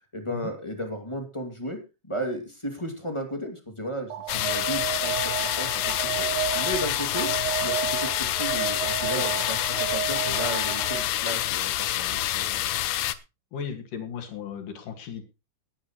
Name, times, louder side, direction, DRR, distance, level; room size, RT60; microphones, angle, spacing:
voice 1, 0.1-6.3 6.5-7.3 7.6-12.8, equal, 10° left, 4 dB, 2.0 m, -34 dB
Alarm, 4.1-11.2, right 10 dB, 75° right, 3.1 m, -32 dB
sound 1, 4.3-13.2, left 13 dB, 75° left, 1.9 m, -27 dB
voice 2, 13.5-15.2, left 7 dB, 90° left, 4 dB, 3.6 m, -35 dB
19.0 x 9.8 x 3.1 m, 0.27 s
omnidirectional pair, 3.6 m